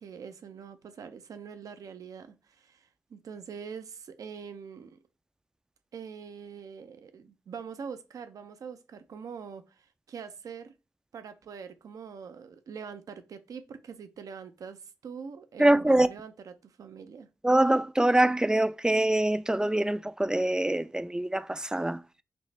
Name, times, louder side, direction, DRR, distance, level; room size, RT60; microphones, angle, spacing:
voice 1, 0.0-5.0 5.9-10.7 11.1-17.3, right 6 dB, 80° right, 0.5 m, -44 dB
voice 2, 15.6-16.1 17.4-22.0, right 1 dB, 10° right, 0.3 m, -24 dB
5.9 x 2.1 x 3.2 m
supercardioid pair, 40°, 6 cm